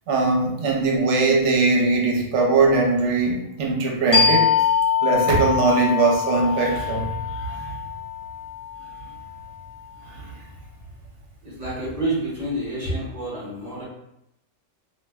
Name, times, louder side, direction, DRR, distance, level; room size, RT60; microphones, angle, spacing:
voice 1, 0.1-4.5 5.0-7.1 7.4-7.6, right 3 dB, 70° right, 0 dB, 0.9 m, -20 dB
sound 1, 4.1-9.4, left 6 dB, 60° left, 1.0 m, -23 dB
voice 2, 11.4-13.8, right 1 dB, 40° right, -6 dB, 0.7 m, -28 dB
2.4 x 2.1 x 3.4 m, 0.82 s
omnidirectional pair, 1.3 m